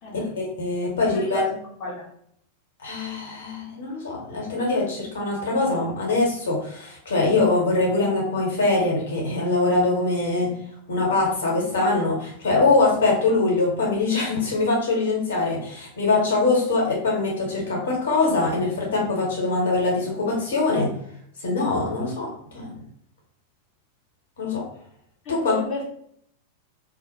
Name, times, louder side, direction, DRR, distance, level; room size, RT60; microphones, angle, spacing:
voice 1, 0.4-1.5 2.8-10.6 10.9-20.9 21.4-22.7 24.4-24.6 25.3-25.6, left 3 dB, 65° left, -2 dB, 0.9 m, -23 dB
voice 2, 1.0-2.1 13.8-13.9 25.2-25.8, left 1 dB, 35° left, -5 dB, 0.7 m, -33 dB
2.5 x 2.0 x 3.0 m, 0.68 s
figure-of-eight pair, 90°, 0 cm